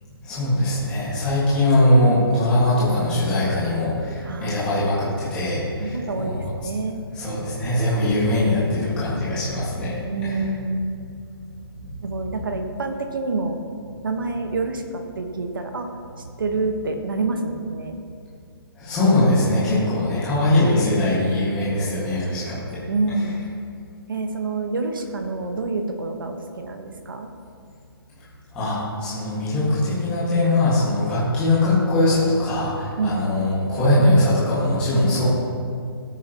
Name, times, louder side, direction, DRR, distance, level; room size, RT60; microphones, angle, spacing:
voice 1, 0.2-6.4 7.1-10.4 11.8-11.9 18.8-22.8 28.5-35.2, left 1 dB, 5° left, -11 dB, 1.7 m, -21 dB
voice 2, 4.2-4.8 5.8-7.1 10.0-10.9 12.0-13.6 14.0-15.9 16.4-17.9 22.9-23.4 24.1-27.3 33.0-33.3, right 3 dB, 55° right, 5 dB, 1.2 m, -27 dB
17.0 x 9.3 x 3.0 m, 2.3 s
hypercardioid pair, 180°, 13 cm